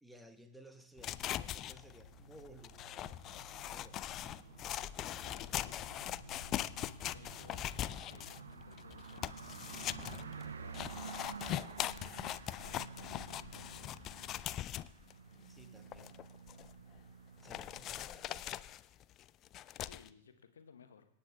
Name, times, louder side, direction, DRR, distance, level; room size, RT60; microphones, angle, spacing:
voice 1, 0.0-4.3 5.0-5.7 15.5-16.2 17.4-18.5, right 1 dB, 5° right, 6 dB, 1.1 m, -58 dB
sound 1, 0.9-10.6, right 3 dB, 50° right, 1.9 m, -58 dB
sound 2, 1.0-15.1 15.6-15.7 15.9-17.0 17.5-20.1, left 12 dB, 35° left, 0.3 m, -41 dB
sound 3, 2.6-18.6, right 6 dB, 70° right, 0.5 m, -52 dB
voice 2, 5.2-11.6 12.6-14.2 19.8-21.1, left 6 dB, 65° left, 8 dB, 1.0 m, -60 dB
25.5 x 8.7 x 2.3 m, 0.79 s
figure-of-eight pair, 90°, 0 cm